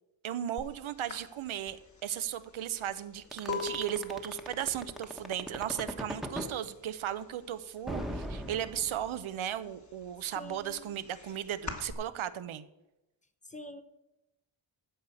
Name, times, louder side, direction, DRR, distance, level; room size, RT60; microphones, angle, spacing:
voice 1, 0.2-12.7, right 10 dB, 85° right, 12 dB, 0.8 m, -36 dB
sound 1, 0.6-0.7 1.1-6.8 7.0-7.5 7.8-9.0 9.4-11.9, left 3 dB, 35° left, 1.8 m, -41 dB
sound 2, 3.3-6.5 7.9-9.3, equal, ahead, 1.1 m, -38 dB
voice 2, 10.4-11.0 13.4-13.8, left 1 dB, 15° left, 8 dB, 0.8 m, -46 dB
13.5 x 4.9 x 8.3 m, 0.95 s
wide cardioid pair, 125°, 47 cm